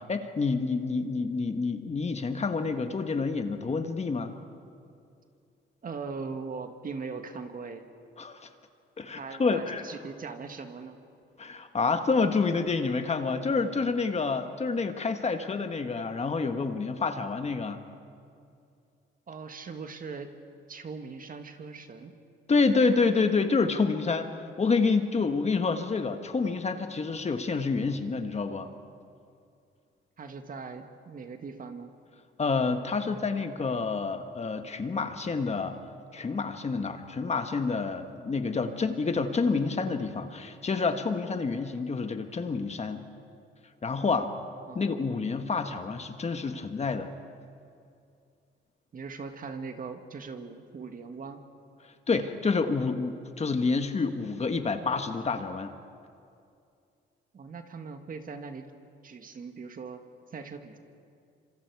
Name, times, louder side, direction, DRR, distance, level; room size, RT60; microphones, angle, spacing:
voice 1, 0.0-4.3 8.2-8.4 9.0-9.8 11.4-17.8 22.5-28.7 32.4-35.8 36.1-43.0 43.8-44.3 44.7-47.1 52.1-55.8, left 4 dB, 35° left, 7 dB, 1.5 m, -28 dB
voice 2, 5.8-7.8 9.2-11.0 19.3-20.3 20.7-22.1 30.2-31.9 44.7-45.0 48.9-51.4 57.3-58.7 59.0-60.0 60.3-60.8, right 4 dB, 45° right, 6 dB, 1.8 m, -40 dB
26.0 x 26.0 x 4.8 m, 2.4 s
cardioid pair, 90°, 20 cm